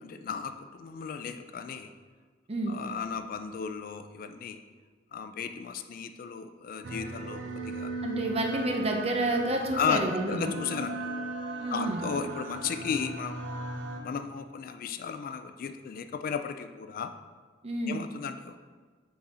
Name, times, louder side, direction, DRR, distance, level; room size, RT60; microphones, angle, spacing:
voice 1, 0.0-1.9 2.7-4.6 5.1-7.9 9.7-11.0 11.7-13.4 14.0-17.1 17.9-18.6, left 6 dB, 50° left, 8 dB, 0.3 m, -34 dB
sound 1, 6.8-14.0, right 2 dB, 85° right, 0.6 m, -37 dB
voice 2, 8.0-10.5 11.6-12.0 17.6-18.0, right 1 dB, 35° right, 3 dB, 0.7 m, -29 dB
6.0 x 4.0 x 4.2 m, 1.5 s
head